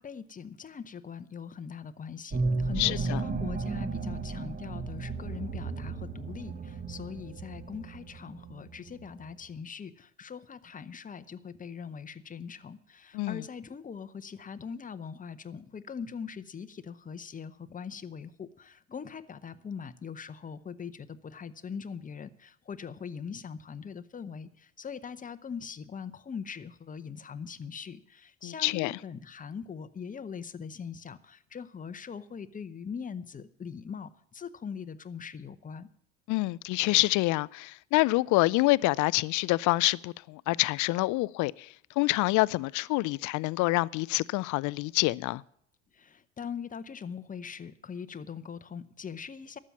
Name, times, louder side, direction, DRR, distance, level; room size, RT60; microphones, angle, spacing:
voice 1, 0.0-35.9 45.9-49.6, left 6 dB, 20° left, 0.9 m, -41 dB
sound 1, 2.3-9.3, right 3 dB, 25° right, 1.3 m, -34 dB
voice 2, 2.8-3.2 13.1-13.4 28.4-29.0 36.3-41.7 42.0-45.4, left 21 dB, 55° left, 0.5 m, -27 dB
12.5 x 7.6 x 8.3 m
hypercardioid pair, 70°, 36 cm